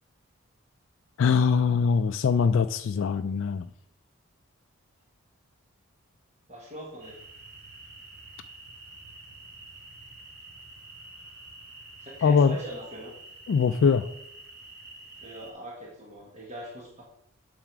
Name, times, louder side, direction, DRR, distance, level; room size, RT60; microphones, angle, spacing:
voice 1, 1.2-3.7 12.2-12.6 13.5-14.1, left 5 dB, 60° left, 9 dB, 0.3 m, -22 dB
voice 2, 6.5-7.2 12.0-13.1 15.2-17.0, right 1 dB, 35° right, -3 dB, 1.5 m, -42 dB
sound 1, 7.0-15.5, right 2 dB, 50° right, 1.7 m, -48 dB
7.5 x 5.8 x 4.6 m, 0.74 s
head